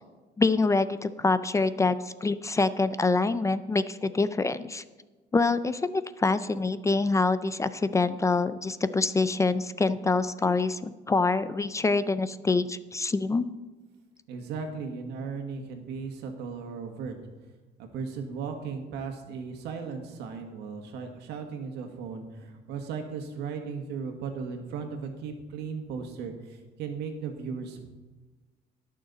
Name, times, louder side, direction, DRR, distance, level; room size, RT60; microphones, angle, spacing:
voice 1, 0.4-4.8 5.3-13.5, left 3 dB, 20° left, 14 dB, 0.4 m, -25 dB
voice 2, 14.3-17.1 17.8-27.8, right 5 dB, 85° right, 5 dB, 1.7 m, -36 dB
18.5 x 6.5 x 4.0 m, 1.2 s
cardioid pair, 110°, 17 cm